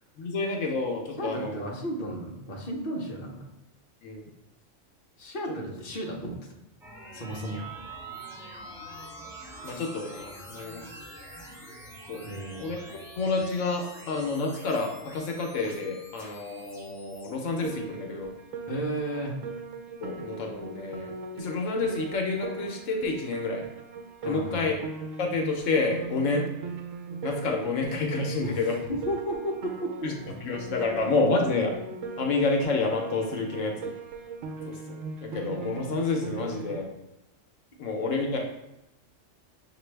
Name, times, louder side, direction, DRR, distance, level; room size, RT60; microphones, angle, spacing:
voice 1, 0.2-1.7 4.0-4.2 9.6-10.8 12.1-12.2 12.6-18.3 20.0-23.6 24.3-24.7 25.2-26.5 27.2-28.8 30.0-30.1 30.4-31.7 32.2-33.9 34.7-34.8 35.2-36.9 37.8-38.4, left 3 dB, 75° left, 2 dB, 1.1 m, -29 dB
voice 2, 1.2-3.5 5.2-6.4 7.1-7.6 12.2-12.6 18.7-19.4 24.2-24.7 28.4-30.1, right 1 dB, 50° left, -1 dB, 0.9 m, -33 dB
sound 1, 6.8-17.7, equal, ahead, 0.8 m, -47 dB
Wind instrument woodwind instrument, 7.2-11.5, right 4 dB, 35° right, 0.6 m, -46 dB
Piano, 17.6-36.8, right 4 dB, 75° right, 0.9 m, -39 dB
5.9 x 2.6 x 3.2 m, 0.91 s
omnidirectional pair, 1.3 m